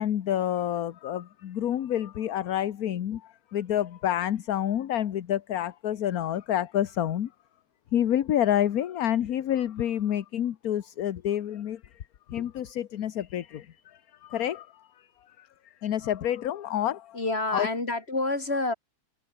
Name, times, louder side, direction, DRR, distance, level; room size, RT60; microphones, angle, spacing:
voice 1, 0.0-7.3 7.9-11.8 12.3-15.1 15.4-15.5 15.8-17.2 17.5-17.7, left 11 dB, 60° left, 1.3 m, -28 dB
voice 2, 17.1-18.7, left 2 dB, 35° left, 4.3 m, -28 dB
omnidirectional pair, 2.0 m